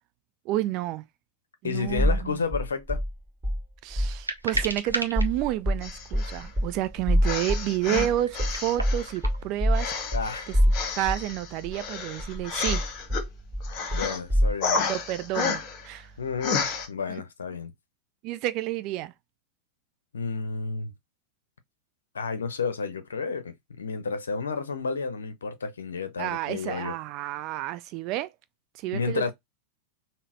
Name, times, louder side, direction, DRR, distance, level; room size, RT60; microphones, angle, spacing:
voice 1, 0.5-1.1 1.6-2.4 3.8-10.1 11.0-12.9 14.9-16.1 17.1-17.2 18.2-19.1 26.2-28.3 28.8-29.3, right 14 dB, 40° right, 0.3 m, -30 dB
voice 2, 1.6-3.0 10.1-10.5 13.9-14.8 16.2-17.7 20.1-20.9 22.1-26.9 28.9-29.3, left 5 dB, 70° left, 0.6 m, -31 dB
sound 1, 2.0-2.3 2.5-3.6 3.9-4.2 4.5-11.3 11.6-11.7 12.2-14.5, equal, 15° right, 1.7 m, -26 dB
sound 2, 4.1-5.2 6.2-6.3 8.2-9.4, right 1 dB, 85° right, 0.7 m, -32 dB
sound 3, 5.8-6.5 7.2-9.2 9.7-13.3 13.6-14.2 14.6-15.9 16.4-16.9, left 5 dB, 35° left, 1.0 m, -31 dB
3.8 x 2.0 x 2.6 m
figure-of-eight pair, 90°, 0 cm